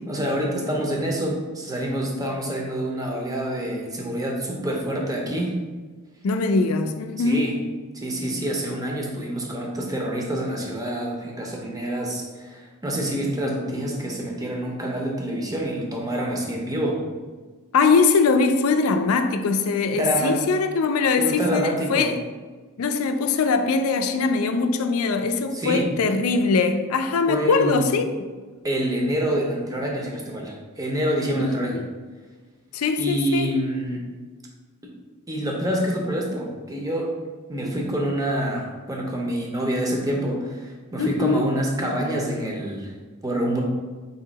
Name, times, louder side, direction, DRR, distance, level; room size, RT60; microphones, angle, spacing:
voice 1, 0.1-5.6 7.2-7.5 7.9-17.0 19.9-20.4 21.2-22.1 25.5-25.9 27.3-27.9 28.6-31.8 33.0-34.0 34.8-34.9 35.3-37.2 37.5-42.9 43.2-43.6, right 1 dB, 15° right, 0 dB, 0.6 m, -27 dB
voice 2, 6.2-7.5 17.7-22.2 22.8-28.0 31.4-31.8 32.7-33.5 41.0-41.5, left 4 dB, 80° left, 8 dB, 0.4 m, -22 dB
4.2 x 2.7 x 3.9 m, 1.4 s
head